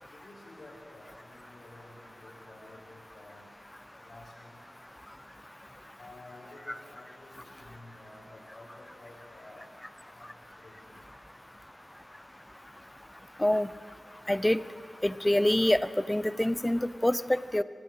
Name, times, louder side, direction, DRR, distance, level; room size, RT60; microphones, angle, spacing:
voice 1, 0.0-3.5 4.0-4.6 6.0-9.7 10.1-11.0, left 2 dB, 75° left, -9 dB, 4.8 m, -52 dB
voice 2, 14.3-14.6 15.0-15.8 16.1-17.6, left 1 dB, 10° left, 15 dB, 0.6 m, -25 dB
23.5 x 13.5 x 9.0 m, 2.5 s
wide cardioid pair, 75°, 0 cm